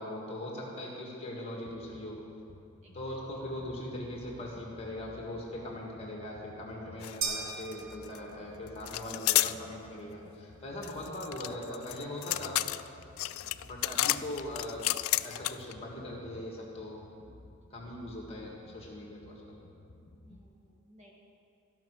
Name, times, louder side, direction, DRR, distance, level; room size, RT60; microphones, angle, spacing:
voice 1, 0.0-2.2 2.9-12.6 13.6-14.8 15.2-17.0 17.7-19.6, left 1 dB, 30° left, -2 dB, 2.0 m, -40 dB
sound 1, 1.7-20.4, left 1 dB, 65° left, 1.1 m, -55 dB
voice 2, 2.8-3.1 13.3-13.6 17.2-17.8 19.9-21.1, equal, 35° right, -2 dB, 1.6 m, -62 dB
sound 2, 7.0-7.2 7.4-8.2 8.9-9.6 10.8-15.7, left 16 dB, 85° left, 0.3 m, -31 dB
sound 3, 7.2-8.7, right 5 dB, 75° right, 1.0 m, -37 dB
14.5 x 5.7 x 6.3 m, 2.6 s
head